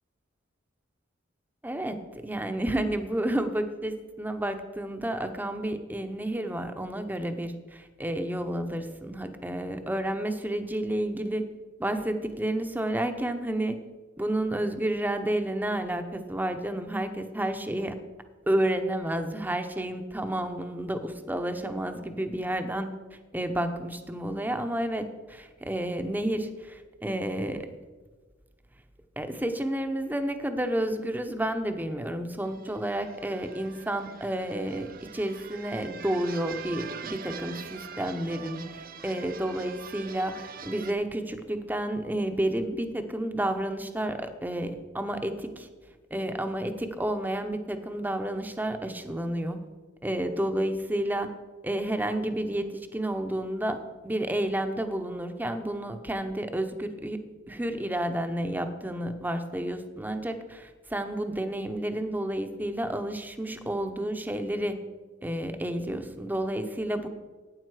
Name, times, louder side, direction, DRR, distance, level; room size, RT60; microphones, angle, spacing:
voice 1, 1.6-11.4 11.8-13.8 14.2-18.0 18.5-22.9 23.3-27.7 29.2-45.7 46.1-49.6 50.0-51.3 51.6-57.2 57.5-64.7 65.2-67.1, right 1 dB, 10° right, 7 dB, 0.8 m, -30 dB
sound 1, 32.4-40.9, right 6 dB, 50° right, 0.6 m, -43 dB
12.0 x 9.0 x 4.8 m, 1.3 s
head